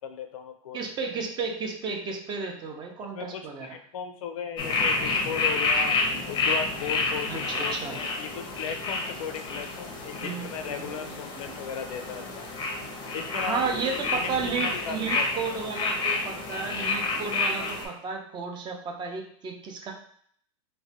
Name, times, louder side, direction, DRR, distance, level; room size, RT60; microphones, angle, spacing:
voice 1, 0.0-0.8 3.0-6.0 6.3-12.5 13.1-15.3, left 7 dB, 85° left, 6 dB, 0.5 m, -36 dB
voice 2, 0.7-3.8 7.3-8.0 10.2-11.0 11.3-11.5 13.3-19.9, right 5 dB, 25° right, 2 dB, 0.5 m, -33 dB
sound 1, 4.6-17.9, left 3 dB, 30° left, 0.5 m, -29 dB
3.1 x 2.1 x 2.7 m, 0.62 s
hypercardioid pair, 125°, 17 cm